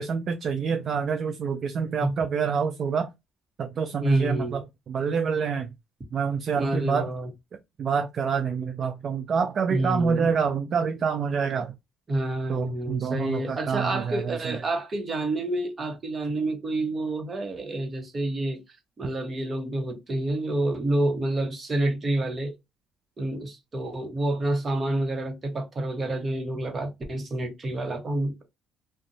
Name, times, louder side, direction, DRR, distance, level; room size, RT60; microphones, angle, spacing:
voice 1, 0.0-3.1 3.6-4.6 4.9-5.7 6.1-7.1 7.8-11.7 12.5-14.6, right 6 dB, 55° right, 0.4 m, -27 dB
voice 2, 4.0-4.6 6.5-7.3 9.7-10.3 12.1-18.6 19.0-22.5 23.2-28.4, right 1 dB, 35° right, 1.1 m, -28 dB
2.5 x 2.2 x 2.6 m
supercardioid pair, 70°, 0 cm